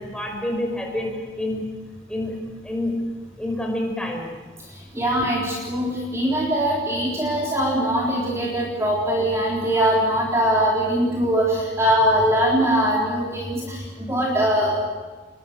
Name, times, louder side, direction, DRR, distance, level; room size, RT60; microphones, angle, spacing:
voice 1, 0.0-1.7 2.1-3.0 3.4-4.4, left 1 dB, 5° left, 1 dB, 5.1 m, -28 dB
voice 2, 4.9-14.8, equal, 15° right, -4 dB, 3.8 m, -22 dB
28.5 x 21.5 x 6.6 m, 1.4 s
head